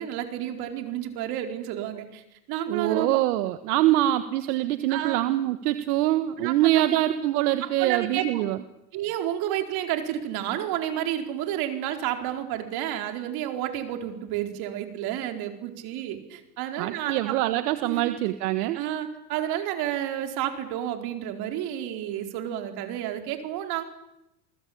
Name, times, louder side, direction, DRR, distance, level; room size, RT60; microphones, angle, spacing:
voice 1, 0.0-2.2 2.5-3.1 3.9-4.0 4.9-5.2 6.4-7.0 7.6-8.4 8.9-17.4 17.9-18.2 18.7-23.8, right 11 dB, 50° right, 6 dB, 4.4 m, -31 dB
voice 2, 2.7-8.6 16.8-18.8, right 14 dB, 70° right, 10 dB, 1.7 m, -24 dB
29.0 x 20.0 x 8.8 m, 0.89 s
supercardioid pair, 135°, 47 cm